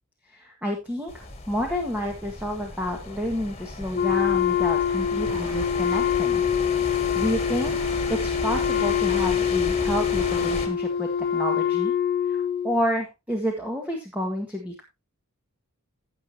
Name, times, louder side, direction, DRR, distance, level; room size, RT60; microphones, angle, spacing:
voice 1, 0.3-6.4 7.1-7.7 8.1-11.9 12.2-14.8, equal, 5° right, 0 dB, 1.8 m, -29 dB
sound 1, 1.1-10.7, left 2 dB, 30° left, 2.1 m, -34 dB
Wind instrument woodwind instrument, 3.9-12.8, left 8 dB, 50° left, 1.4 m, -25 dB
sound 2, 5.3-7.2 7.7-9.5 10.1-11.8, right 3 dB, 80° right, 1.9 m, -44 dB
16.0 x 7.0 x 2.9 m, 0.24 s
head